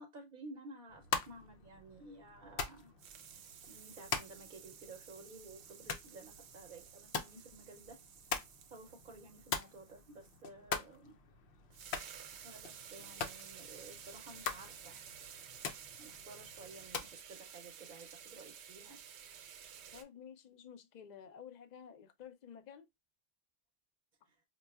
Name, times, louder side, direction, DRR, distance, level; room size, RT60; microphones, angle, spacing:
voice 1, 0.0-2.9 3.7-8.0 8.7-11.2 12.4-15.0 16.0-19.0 24.3-24.4, right 2 dB, 55° right, 0.6 m, -53 dB
sound 1, 0.9-17.2, left 6 dB, 75° left, 0.9 m, -44 dB
sound 2, 1.5-2.7 3.0-10.4 11.4-11.5 11.7-20.0, right 8 dB, 80° right, 0.8 m, -53 dB
voice 2, 19.9-22.9, left 8 dB, 55° left, 0.5 m, -52 dB
5.1 x 2.2 x 2.2 m
omnidirectional pair, 1.1 m